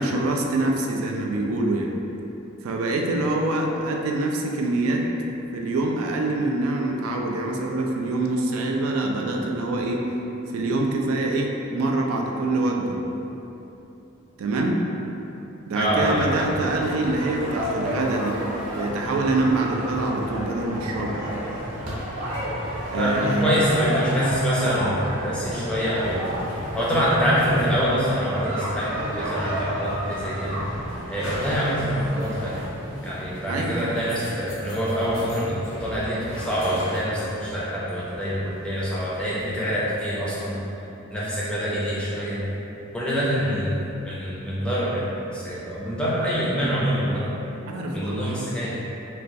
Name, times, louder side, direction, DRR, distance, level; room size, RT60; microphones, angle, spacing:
voice 1, 0.0-1.9 2.6-5.1 5.5-10.1 10.5-13.0 14.4-14.8 15.7-18.4 18.8-21.2 22.9-23.5 33.5-33.9 47.7-48.4, right 2 dB, 85° right, 1 dB, 0.3 m, -25 dB
voice 2, 15.8-16.5 23.0-26.3 26.7-30.6 31.1-32.6 33.0-40.6 41.1-42.4 42.9-43.7 44.1-45.0 45.3-47.3 47.9-48.8, equal, 5° left, -8 dB, 0.4 m, -25 dB
sound 1, 15.8-32.6, equal, 40° right, 0.7 m, -31 dB
sound 2, 29.8-39.9, equal, 65° left, 0.5 m, -39 dB
3.0 x 2.3 x 2.6 m, 3.0 s
head